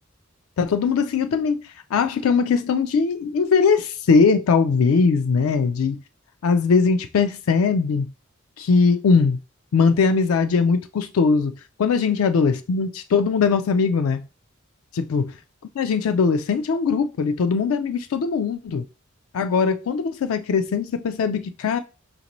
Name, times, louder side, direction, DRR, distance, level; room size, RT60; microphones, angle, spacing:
voice 1, 0.6-1.6 1.9-6.0 6.4-8.1 8.6-9.4 9.7-11.5 11.8-14.2 14.9-15.3 15.8-18.8 19.3-21.8, left 5 dB, 80° left, 0.4 m, -20 dB
5.0 x 2.6 x 2.9 m
head